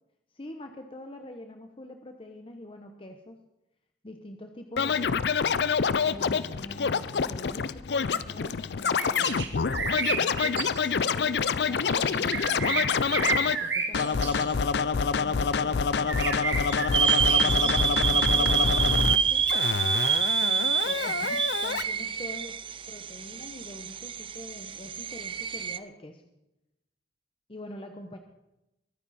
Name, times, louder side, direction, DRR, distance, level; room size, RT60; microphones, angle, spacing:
voice 1, 0.3-3.4 4.0-5.3 5.9-14.6 15.2-16.4 17.3-19.5 20.3-22.6 22.9-26.2 27.5-28.2, left 1 dB, 30° left, 5 dB, 1.0 m, -44 dB
Scratching (performance technique), 4.8-13.6 13.9-19.2 19.5-21.8, left 5 dB, 70° left, 0.5 m, -27 dB
sound 1, 9.0-9.5 9.7-10.9 11.7-14.6 16.1-18.6, right 4 dB, 85° right, 2.1 m, -32 dB
sound 2, 16.9-25.8, right 7 dB, 30° right, 0.5 m, -27 dB
22.5 x 9.8 x 4.2 m, 0.90 s
head